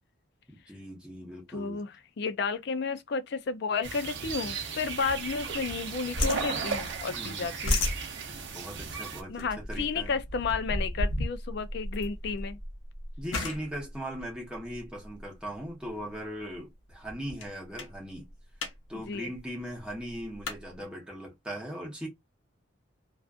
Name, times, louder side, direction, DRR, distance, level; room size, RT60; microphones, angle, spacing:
voice 1, 0.5-1.8 7.2-7.5 8.3-10.2 13.2-18.3 18.9-22.1, equal, 5° right, 0.8 m, -39 dB
voice 2, 1.5-7.9 9.3-12.6 18.9-19.3, left 5 dB, 55° left, 0.4 m, -32 dB
sound 1, 3.8-9.2, right 5 dB, 60° right, 0.6 m, -36 dB
sound 2, 5.2-5.9 6.1-7.1 7.4-15.2 15.9-16.2 16.5-16.6 16.9-17.5 17.8-18.0 18.3-18.8 19.0-19.1 19.3-20.6, left 1 dB, 75° left, 0.8 m, -33 dB
2.5 x 2.3 x 2.4 m
head